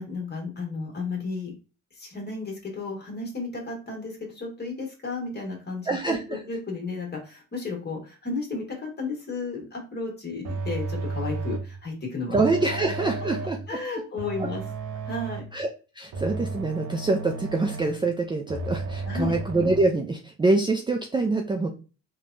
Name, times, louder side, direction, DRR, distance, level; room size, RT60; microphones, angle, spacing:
voice 1, 0.0-1.5 1.9-12.4 13.7-14.6 15.0-15.4 19.0-19.3, left 3 dB, 35° left, 1 dB, 1.5 m, -33 dB
voice 2, 5.9-6.4 12.3-13.6 15.5-15.7 16.0-21.7, right 3 dB, 15° right, 2 dB, 0.4 m, -25 dB
sound 1, 10.4-11.8 12.3-13.7 14.2-15.6 16.1-18.0 18.5-19.8, right 3 dB, 60° right, 0.7 m, -33 dB
3.2 x 2.3 x 2.5 m, 0.33 s
cardioid pair, 90°, 30 cm